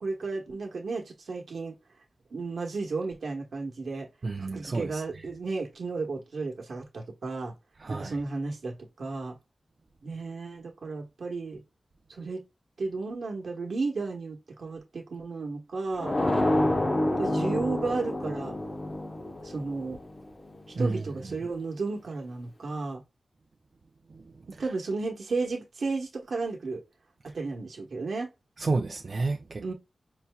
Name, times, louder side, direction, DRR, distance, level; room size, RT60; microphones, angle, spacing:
voice 1, 0.0-1.7 2.3-4.1 4.4-7.5 7.9-9.4 10.0-11.6 12.1-12.4 12.8-16.1 17.1-18.5 19.4-20.0 20.8-23.0 24.5-26.8 27.2-28.3 29.6-29.7, right 3 dB, 80° right, 1.1 m, -33 dB
voice 2, 4.2-5.2 7.8-8.2 20.7-21.0 24.1-24.3 28.6-29.7, right 3 dB, 50° right, 0.4 m, -31 dB
sound 1, 16.0-20.7, left 1 dB, 35° left, 0.7 m, -28 dB
5.5 x 2.7 x 2.2 m
wide cardioid pair, 105°, 0 cm